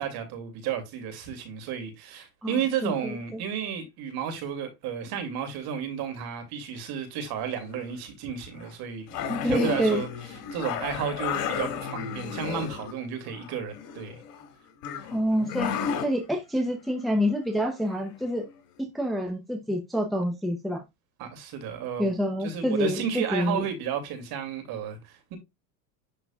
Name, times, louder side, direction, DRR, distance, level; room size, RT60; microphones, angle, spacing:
voice 1, 0.0-10.1 10.5-14.2 15.0-15.1 21.2-22.1 22.4-25.4, right 8 dB, 50° right, 2.6 m, -33 dB
voice 2, 2.8-3.2 9.3-10.0 15.1-15.7 16.0-18.5 18.9-20.8 22.0-23.6, equal, ahead, 0.9 m, -27 dB
sound 1, 7.3-7.8 8.6-8.7 9.1-12.9 13.3-14.5 14.8-16.1 17.9-18.0 18.4-18.5, left 7 dB, 85° left, 2.2 m, -33 dB
11.0 x 4.0 x 2.4 m
supercardioid pair, 140°, 47 cm